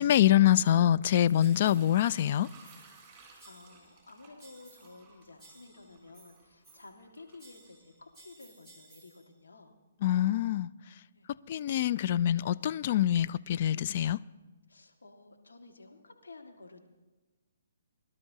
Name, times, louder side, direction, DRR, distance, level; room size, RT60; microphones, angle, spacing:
voice 1, 0.0-2.5 10.0-10.7 11.3-14.2, left 11 dB, 45° left, 0.3 m, -25 dB
Sink (filling or washing) / Liquid, 1.2-8.2, right 5 dB, 20° right, 4.1 m, -58 dB
sound 1, 1.4-2.0 2.6-3.0 3.4-4.0 4.4-5.1 5.4-7.0 7.4-9.3, right 2 dB, ahead, 1.8 m, -58 dB
voice 2, 3.1-9.8 11.1-11.3 14.7-16.8, left 3 dB, 85° left, 1.7 m, -53 dB
22.5 x 12.0 x 2.8 m
hypercardioid pair, 140°, 0 cm